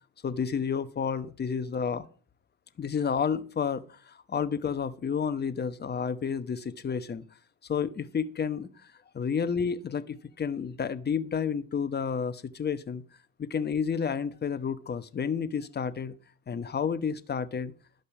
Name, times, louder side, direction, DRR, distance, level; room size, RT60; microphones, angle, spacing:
voice 1, 0.2-2.0 2.8-7.2 7.7-8.7 9.1-13.0 13.4-16.1 16.5-17.7, left 6 dB, 25° left, 13 dB, 1.1 m, -30 dB
12.0 x 5.3 x 7.2 m, 0.40 s
supercardioid pair, 90°, 38 cm